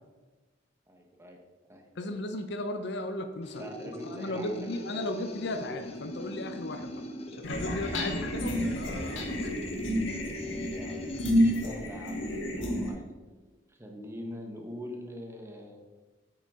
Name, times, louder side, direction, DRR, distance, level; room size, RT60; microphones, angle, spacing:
voice 1, 0.9-1.4 1.7-1.8 3.6-5.0 10.3-13.0 13.7-15.8, equal, 15° right, 2 dB, 1.2 m, -44 dB
voice 2, 2.0-3.7 4.1-7.0 7.3-9.6, left 1 dB, 65° left, 7 dB, 0.7 m, -36 dB
sound 1, 3.4-11.6, left 1 dB, 35° left, 0.8 m, -42 dB
sound 2, 7.4-12.9, equal, 85° left, 1.8 m, -30 dB
8.2 x 7.9 x 3.7 m, 1.3 s
head